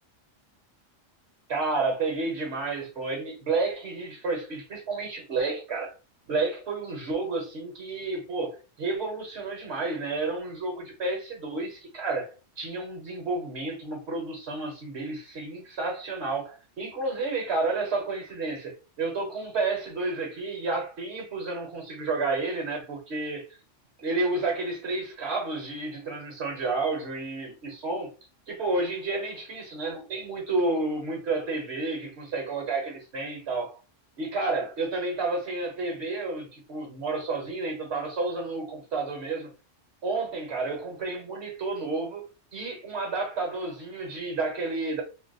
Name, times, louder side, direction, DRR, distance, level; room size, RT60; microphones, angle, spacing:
voice 1, 1.5-5.9 6.3-18.7 19.0-23.5 24.0-28.1 28.5-33.8 34.2-39.5 40.0-42.2 42.5-45.0, right 3 dB, 60° right, 1.1 m, -31 dB
2.6 x 2.0 x 3.9 m
omnidirectional pair, 1.3 m